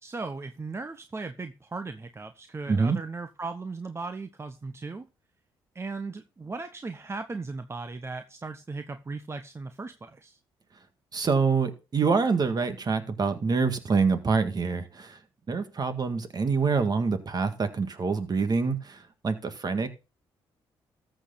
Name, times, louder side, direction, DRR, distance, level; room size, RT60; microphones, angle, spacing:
voice 1, 0.0-5.1 5.7-10.4, right 3 dB, 25° right, 1.0 m, -37 dB
voice 2, 2.7-3.0 11.1-15.2 15.5-19.9, right 4 dB, 45° right, 1.9 m, -26 dB
13.5 x 6.6 x 4.0 m
cardioid pair, 75°, 10 cm